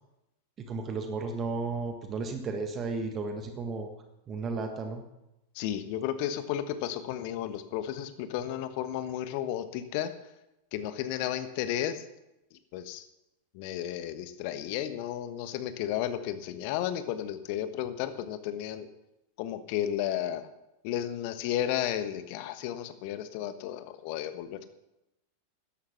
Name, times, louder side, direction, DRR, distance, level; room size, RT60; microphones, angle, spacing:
voice 1, 0.6-3.9 4.3-5.0, right 4 dB, 25° right, 5 dB, 1.6 m, -34 dB
voice 2, 5.5-10.1 10.7-12.0 12.5-13.1 13.5-18.9 19.4-20.5 20.8-24.7, left 11 dB, 45° left, 11 dB, 1.4 m, -33 dB
13.5 x 11.5 x 6.0 m, 0.91 s
figure-of-eight pair, 90°, 0 cm